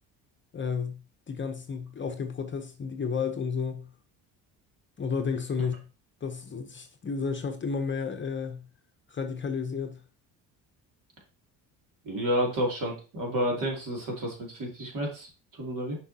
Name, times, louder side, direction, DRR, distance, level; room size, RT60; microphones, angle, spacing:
voice 1, 0.5-1.0 1.3-3.9 5.0-5.7 6.2-8.6 9.1-10.0, left 5 dB, 30° left, 0.8 m, -32 dB
voice 2, 12.0-16.0, equal, 55° right, 2.9 m, -30 dB
6.4 x 5.5 x 2.8 m
supercardioid pair, 85°, 38 cm